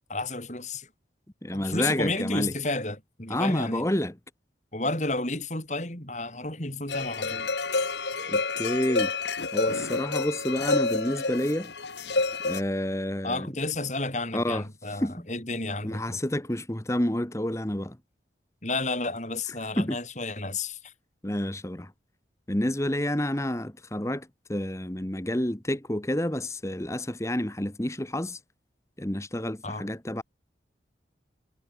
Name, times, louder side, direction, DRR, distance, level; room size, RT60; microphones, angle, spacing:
voice 1, 0.1-0.9 1.5-3.9 4.7-7.5 13.2-16.2 18.6-20.9 29.6-29.9, left 2 dB, 40° left, 6.3 m, -32 dB
voice 2, 1.4-2.5 3.3-4.1 8.3-9.1 9.5-11.7 12.4-13.5 14.3-14.6 15.0-15.3 15.8-18.0 19.8-20.0 21.2-21.9 22.5-28.4 29.0-30.2, left 1 dB, 15° left, 1.3 m, -29 dB
sound 1, 6.9-12.6, left 3 dB, 70° left, 2.3 m, -29 dB
head